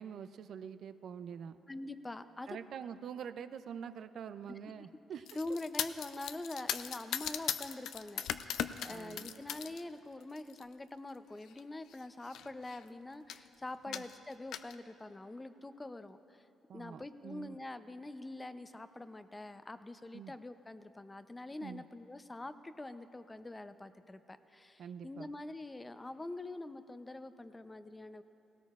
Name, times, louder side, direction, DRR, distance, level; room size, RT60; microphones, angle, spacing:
voice 1, 0.0-1.6 2.5-5.3 8.9-9.4 13.9-14.0 16.7-17.6 20.1-20.3 21.6-21.8 24.8-25.3, right 7 dB, 65° right, 12 dB, 0.4 m, -45 dB
voice 2, 1.7-2.6 5.3-16.5 16.7-28.2, left 2 dB, 20° left, 11 dB, 0.5 m, -45 dB
sound 1, 5.3-9.8 10.2-10.6 11.5-11.6 11.9-12.0 12.2-12.8 13.3-13.5 13.9-14.8, left 9 dB, 80° left, 0.4 m, -39 dB
18.0 x 17.5 x 2.4 m, 2.9 s
cardioid pair, 90°, 0 cm